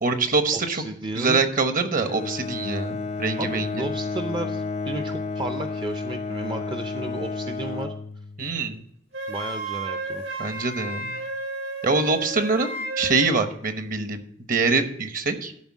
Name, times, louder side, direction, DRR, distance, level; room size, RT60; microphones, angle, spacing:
voice 1, 0.0-0.8 1.1-3.7 8.4-8.8 10.4-11.1 11.8-14.2 14.5-15.5, right 4 dB, 45° right, 8 dB, 1.0 m, -24 dB
voice 2, 0.5-1.4 3.4-7.9 9.3-10.4, right 2 dB, 25° right, 7 dB, 0.5 m, -33 dB
Bowed string instrument, 1.9-8.6, left 4 dB, 35° left, 0.5 m, -31 dB
Wind instrument woodwind instrument, 9.1-13.3, right 2 dB, 85° right, 3.3 m, -32 dB
12.0 x 4.1 x 7.2 m, 0.72 s
head